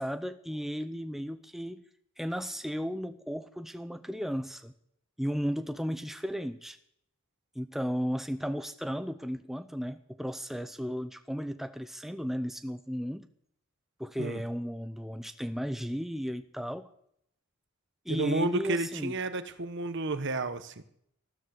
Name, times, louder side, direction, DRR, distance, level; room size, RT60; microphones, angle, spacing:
voice 1, 0.0-1.8 2.2-4.7 5.2-6.8 7.6-13.3 14.0-16.9 18.1-19.1, equal, ahead, 10 dB, 0.6 m, -34 dB
voice 2, 18.1-20.8, right 2 dB, 55° right, 12 dB, 1.2 m, -31 dB
14.0 x 13.0 x 6.6 m, 0.70 s
head